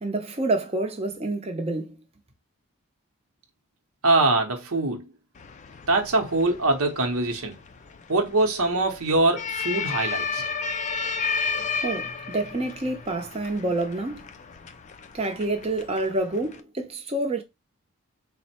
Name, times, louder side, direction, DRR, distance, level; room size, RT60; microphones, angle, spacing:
voice 1, 0.0-1.9 11.8-14.2 15.1-17.4, right 2 dB, 25° right, 0.7 m, -28 dB
voice 2, 4.0-5.0 5.9-7.6 8.1-10.4, right 2 dB, 70° right, 0.8 m, -23 dB
sound 1, 5.4-16.6, left 5 dB, 30° left, 0.3 m, -33 dB
4.1 x 2.1 x 4.2 m
head